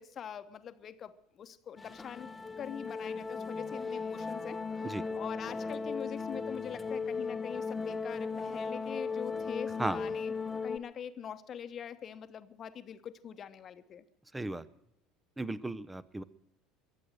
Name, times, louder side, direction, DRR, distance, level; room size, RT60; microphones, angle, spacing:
voice 1, 0.0-2.3 2.6-4.9 5.1-10.3 10.6-14.0, left 8 dB, 40° left, 11 dB, 1.1 m, -43 dB
sound 1, 1.8-10.8, left 4 dB, 20° left, 1.1 m, -37 dB
voice 2, 14.3-14.6 15.4-16.2, right 2 dB, 10° right, 17 dB, 0.8 m, -35 dB
22.5 x 7.6 x 6.5 m, 0.83 s
hypercardioid pair, 70°, 0 cm